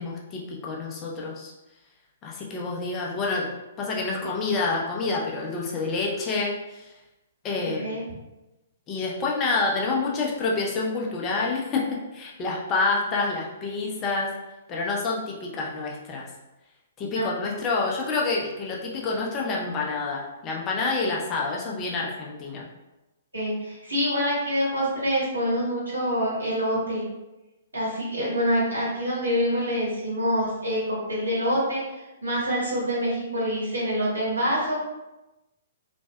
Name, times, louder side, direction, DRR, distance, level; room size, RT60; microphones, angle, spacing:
voice 1, 0.0-1.5 2.2-3.5 3.8-6.9 7.4-8.0 8.9-14.3 14.7-16.3 17.0-22.7, left 3 dB, 25° left, -3 dB, 0.5 m, -28 dB
voice 2, 7.6-8.0 23.3-27.0 27.7-31.8 32.2-34.7, equal, 80° right, -7 dB, 1.5 m, -26 dB
3.2 x 2.5 x 2.2 m, 1.0 s
figure-of-eight pair, 120°, 0 cm